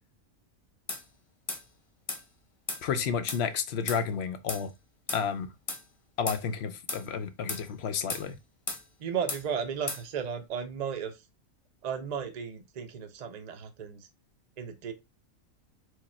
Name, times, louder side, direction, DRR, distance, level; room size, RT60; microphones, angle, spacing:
sound 1, 0.9-1.0 1.5-1.6 2.1-2.2 2.7-2.8 3.3-3.4 3.9-4.0 4.5-4.6 5.1-5.2 5.7-5.8 6.3-6.4 6.9-7.0 7.5-7.6 8.1-8.3 8.7-8.8 9.3-9.4 9.9-10.0, left 3 dB, 30° left, 0.9 m, -35 dB
voice 1, 2.8-4.7 5.1-5.5 6.2-8.4, left 6 dB, 65° left, 0.7 m, -31 dB
voice 2, 9.0-11.2 11.8-14.1 14.6-14.9, right 7 dB, 40° right, 0.6 m, -34 dB
4.8 x 2.3 x 4.2 m
omnidirectional pair, 1.4 m